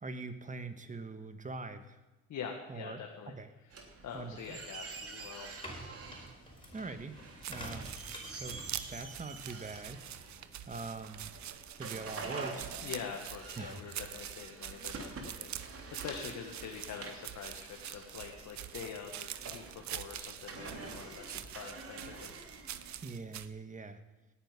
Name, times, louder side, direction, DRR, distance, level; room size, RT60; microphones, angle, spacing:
voice 1, 0.0-2.0 2.7-3.0 3.3-3.5 4.1-4.6 6.7-7.2 7.5-8.0 8.3-10.0 10.6-11.3 11.8-12.7 13.6-13.8 23.0-24.0, right 3 dB, 25° right, 9 dB, 1.6 m, -43 dB
voice 2, 2.3-3.3 3.6-5.5 12.8-22.4, left 6 dB, 70° left, 1 dB, 1.9 m, -45 dB
sound 1, 3.7-22.9, right 4 dB, 50° right, 3.0 m, -47 dB
sound 2, 5.3-11.5, equal, 15° left, 5.1 m, -50 dB
sound 3, 7.4-23.5, right 11 dB, 70° right, 0.8 m, -45 dB
18.5 x 9.7 x 5.4 m, 1.1 s
cardioid pair, 90°, 30 cm